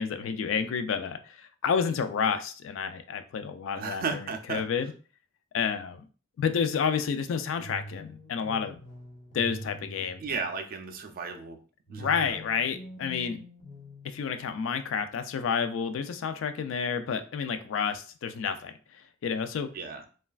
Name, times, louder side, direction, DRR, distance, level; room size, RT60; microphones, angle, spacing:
voice 1, 0.0-4.9 5.5-6.0 6.4-8.8 9.3-10.2 12.0-13.4 14.0-19.7, left 6 dB, 70° left, 9 dB, 0.3 m, -30 dB
voice 2, 3.8-4.6 10.2-11.6 11.9-12.4 19.7-20.0, right 5 dB, 45° right, 5 dB, 0.4 m, -34 dB
sound 1, 7.6-10.7 11.9-14.8, equal, 40° left, 0.8 m, -45 dB
3.1 x 2.3 x 2.3 m, 0.37 s
head